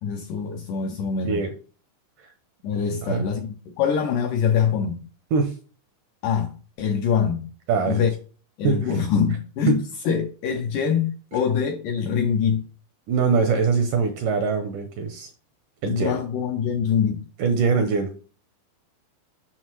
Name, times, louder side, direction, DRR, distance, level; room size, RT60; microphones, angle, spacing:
voice 1, 0.0-1.4 2.6-5.0 6.2-7.5 7.9-8.1 8.6-12.7 15.9-17.3, left 7 dB, 80° left, 2.0 m, -24 dB
voice 2, 7.7-8.1 8.6-9.0 9.7-9.8 13.1-15.3 15.8-16.2 17.4-18.1, right 5 dB, 75° right, 1.9 m, -23 dB
7.4 x 6.1 x 3.0 m
omnidirectional pair, 4.4 m